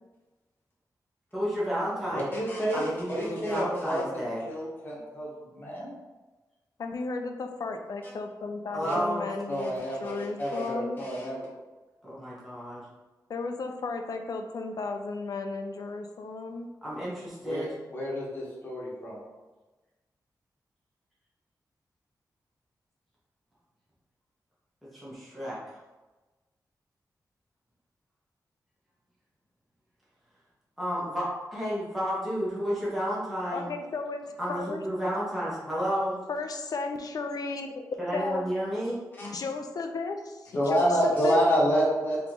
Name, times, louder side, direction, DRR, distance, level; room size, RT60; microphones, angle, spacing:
voice 1, 1.3-2.3 2.7-4.4 8.7-9.2 12.0-12.8 16.8-17.7 24.9-25.6 30.8-33.7 34.4-36.2 38.0-39.0, equal, ahead, -9 dB, 1.2 m, -31 dB
voice 2, 2.1-4.0 4.5-5.9 8.8-8.9 9.5-11.5 17.4-19.2 39.2-39.3 40.5-42.2, equal, 30° left, -6 dB, 1.3 m, -28 dB
voice 3, 6.8-9.7 10.0-10.9 13.3-16.7 33.5-34.2 34.5-34.8 36.3-37.8 38.1-38.5 39.2-41.4, left 3 dB, 60° left, 5 dB, 0.5 m, -34 dB
3.6 x 3.0 x 3.7 m, 1.2 s
wide cardioid pair, 145°, 7 cm